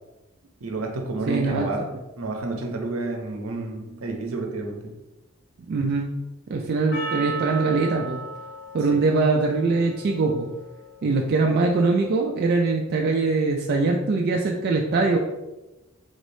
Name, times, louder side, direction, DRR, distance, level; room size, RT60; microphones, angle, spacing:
voice 1, 0.6-4.9 8.9-9.0, right 3 dB, 75° right, 2 dB, 0.7 m, -30 dB
voice 2, 1.3-1.7 5.7-6.1 6.5-8.2 8.7-10.5 11.0-15.2, right 3 dB, 50° right, 0 dB, 0.3 m, -22 dB
Percussion, 6.9-11.4, right 3 dB, 55° left, 0.7 m, -36 dB
3.6 x 3.3 x 2.6 m, 1.0 s
head